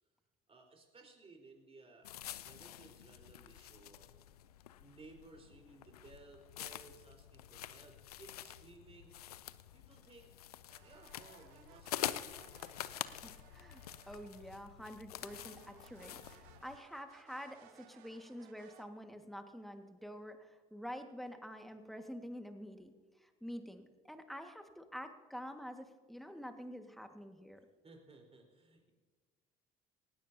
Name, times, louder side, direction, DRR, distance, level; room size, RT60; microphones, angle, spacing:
voice 1, 0.5-4.1 4.8-9.1 9.7-10.5 10.8-12.6 27.8-28.9, right 3 dB, 30° right, 2 dB, 4.3 m, -59 dB
sound 1, 2.0-16.8, left 12 dB, 90° left, 0.5 m, -47 dB
sound 2, 10.7-14.8 15.2-18.8, right 11 dB, 75° right, 0.9 m, -62 dB
voice 2, 13.0-27.6, equal, ahead, 6 dB, 1.7 m, -48 dB
19.0 x 16.0 x 2.8 m, 1.4 s
hypercardioid pair, 60°, 19 cm